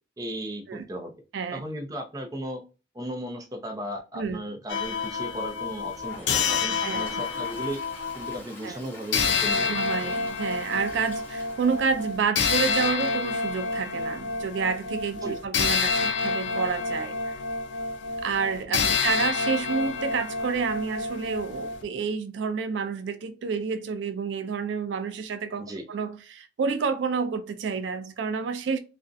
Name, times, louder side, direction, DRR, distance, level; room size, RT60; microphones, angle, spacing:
voice 1, 0.2-1.1 1.5-2.6 2.9-7.8 8.1-10.1 15.2-15.4 18.8-19.0 25.6-25.8, right 1 dB, 20° right, 0.4 m, -36 dB
sound 1, 4.7-8.4 9.1-21.8, left 5 dB, 85° left, 0.4 m, -28 dB
Toilet flush, 6.0-12.7 13.0-13.1 13.3-13.4 13.7-13.8 16.3-16.4 17.7-17.8, left 2 dB, 10° left, 0.8 m, -45 dB
voice 2, 6.4-7.1 8.6-8.8 9.6-17.4 18.2-28.8, right 5 dB, 80° right, 0.4 m, -29 dB
2.5 x 2.0 x 2.5 m
head